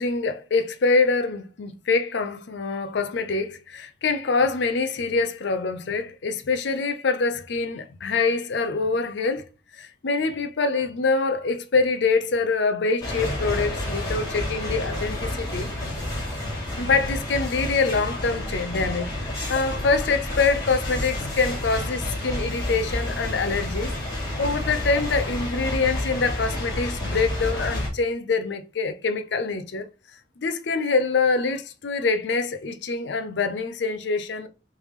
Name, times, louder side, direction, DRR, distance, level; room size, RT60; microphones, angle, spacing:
voice 1, 0.0-9.4 9.8-15.7 16.8-23.9 24.4-29.9 30.4-34.5, left 4 dB, 65° left, 0.5 m, -25 dB
sound 1, 13.0-27.9, left 1 dB, 20° left, 1.4 m, -30 dB
3.4 x 3.2 x 3.1 m
head